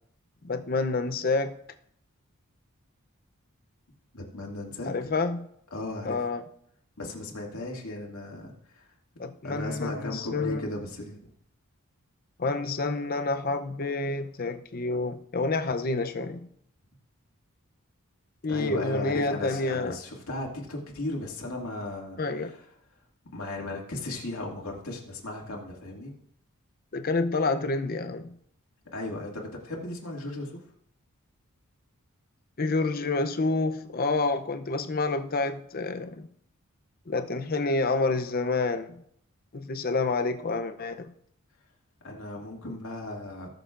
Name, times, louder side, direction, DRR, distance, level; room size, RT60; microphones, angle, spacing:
voice 1, 0.4-1.6 4.9-5.5 6.0-6.4 9.2-10.7 12.4-16.5 18.4-20.0 22.2-22.5 26.9-28.4 32.6-36.3 37.1-39.0 39.5-41.1, left 3 dB, 45° left, 0.6 m, -28 dB
voice 2, 4.1-5.1 5.7-6.2 7.0-8.9 9.4-11.2 18.5-22.7 23.3-26.1 28.9-30.6 42.0-43.5, left 2 dB, 80° left, 2.2 m, -36 dB
19.0 x 6.7 x 2.5 m
head